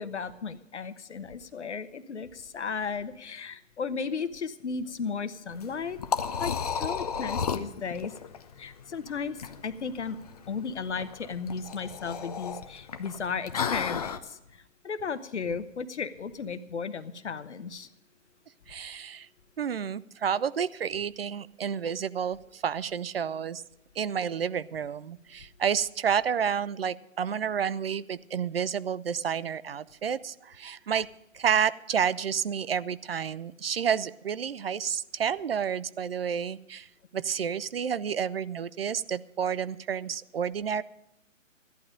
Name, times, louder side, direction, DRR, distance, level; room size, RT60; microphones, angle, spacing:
voice 1, 0.0-6.1 6.4-8.1 8.6-10.2 10.5-17.9, left 5 dB, 60° left, 12 dB, 1.1 m, -35 dB
Liquid, 5.5-14.2, left 6 dB, 30° left, 0.7 m, -34 dB
voice 2, 18.7-19.3 19.6-23.6 24.0-31.1 31.3-36.9 37.1-40.8, right 7 dB, 50° right, 17 dB, 0.5 m, -30 dB
15.0 x 11.5 x 5.1 m, 0.84 s
figure-of-eight pair, 140°, 39 cm